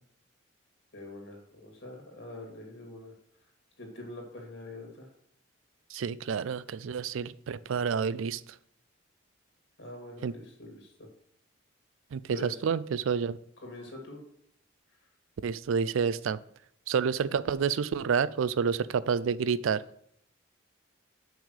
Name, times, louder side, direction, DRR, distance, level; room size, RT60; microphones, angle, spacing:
voice 1, 0.9-3.1 3.8-5.1 9.8-10.9 12.3-12.5 13.6-14.2, left 2 dB, 60° left, 1 dB, 2.3 m, -44 dB
voice 2, 5.9-8.6 10.2-10.3 12.1-13.4 15.4-16.4 16.9-19.8, right 6 dB, 80° right, 18 dB, 0.4 m, -29 dB
6.1 x 5.4 x 6.5 m, 0.71 s
head